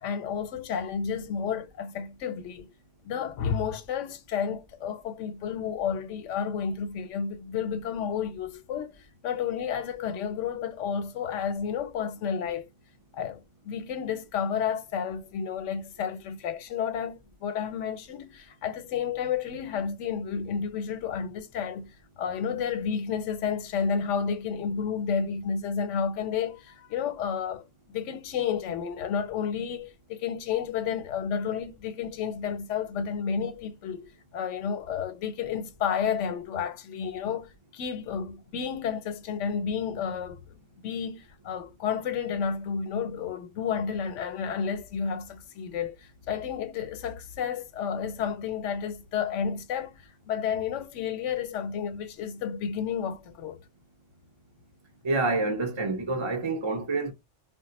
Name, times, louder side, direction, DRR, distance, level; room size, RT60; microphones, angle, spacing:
voice 1, 0.0-2.7 3.0-12.7 13.1-21.9 22.2-40.4 40.8-46.0 46.3-53.6, left 7 dB, 85° left, 0.9 m, -31 dB
voice 2, 55.0-57.1, right 3 dB, 40° right, 0.4 m, -27 dB
2.4 x 2.1 x 3.9 m
omnidirectional pair, 1.2 m